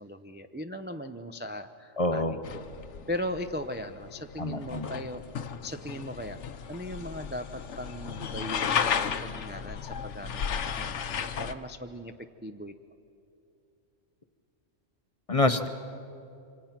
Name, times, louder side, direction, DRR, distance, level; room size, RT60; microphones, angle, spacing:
voice 1, 0.0-2.8 3.1-5.2 5.6-6.4 6.7-12.1 12.4-12.7, left 1 dB, 15° right, 7 dB, 0.4 m, -38 dB
voice 2, 2.0-2.4 4.4-4.9 15.3-15.7, left 2 dB, 30° left, 8 dB, 0.7 m, -26 dB
sound 1, 2.4-11.5, left 7 dB, 65° left, 1.1 m, -34 dB
27.5 x 25.0 x 5.9 m, 2.7 s
omnidirectional pair, 1.3 m